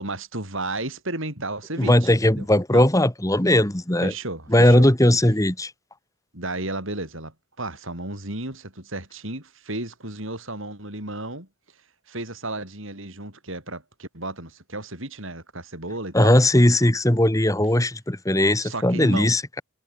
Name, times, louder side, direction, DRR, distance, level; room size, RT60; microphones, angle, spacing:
voice 1, 0.0-2.5 2.7-2.9 4.0-4.9 6.3-11.5 12.1-16.3 18.6-19.3, right 2 dB, 60° right, 7.9 m, -33 dB
voice 2, 1.8-4.1 4.5-5.7 16.1-19.6, left 1 dB, 15° left, 1.8 m, -18 dB
head